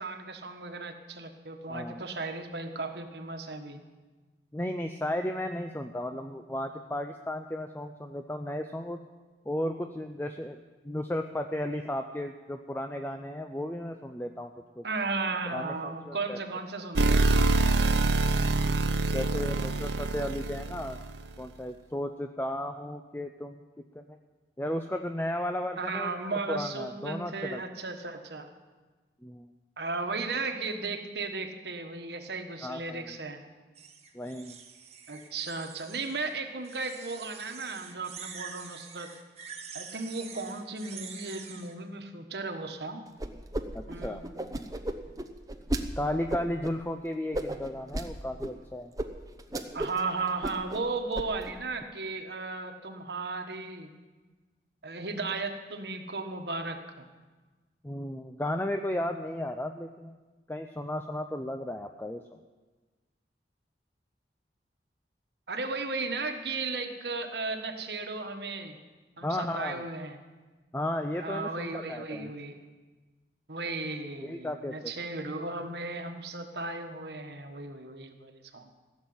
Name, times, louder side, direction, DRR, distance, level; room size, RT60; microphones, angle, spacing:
voice 1, 0.0-3.8 14.8-17.7 25.8-28.5 29.8-33.4 35.1-39.1 39.7-43.0 43.9-44.2 49.7-53.9 54.8-57.1 65.5-68.8 69.2-70.2 71.2-72.5 73.5-78.7, right 3 dB, 70° right, 5 dB, 1.4 m, -35 dB
voice 2, 1.7-2.0 4.5-9.0 9.5-14.5 14.8-14.9 15.5-16.4 18.6-21.0 21.4-23.6 23.9-24.2 24.6-26.2 26.5-27.6 29.2-29.5 32.6-33.1 34.1-34.6 43.7-44.3 46.0-48.9 57.8-60.1 60.5-62.4 69.2-69.8 70.7-72.3 74.2-74.9, left 1 dB, 10° left, 6 dB, 0.5 m, -34 dB
sound 1, 16.9-21.2, right 2 dB, 85° right, 0.9 m, -25 dB
sound 2, 33.7-36.3 36.6-41.7, right 6 dB, 35° right, 1.4 m, -46 dB
sound 3, 43.2-43.6 43.9-45.8 46.3-46.7 47.3-48.1 48.4-48.5 49.0-49.1 49.4-50.0 50.3-50.8 51.1-51.5, right 1 dB, 20° right, 0.8 m, -33 dB
16.0 x 7.4 x 9.5 m, 1.3 s
head